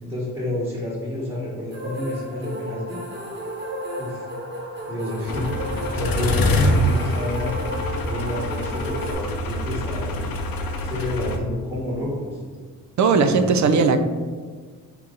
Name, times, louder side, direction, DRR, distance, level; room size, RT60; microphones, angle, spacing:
voice 1, 0.0-3.0 4.0-4.3 4.9-5.5 5.9-7.6 8.1-10.3 10.8-12.4 13.1-13.8, left 1 dB, 5° right, -5 dB, 1.2 m, -29 dB
sound 1, 1.7-9.1, equal, 30° right, 1.2 m, -33 dB
sound 2, 5.3-11.4, left 1 dB, 65° left, 0.6 m, -25 dB
voice 2, 13.0-14.0, right 4 dB, 50° right, 8 dB, 0.5 m, -18 dB
3.8 x 2.8 x 3.7 m, 1.5 s
cardioid pair, 75°, 38 cm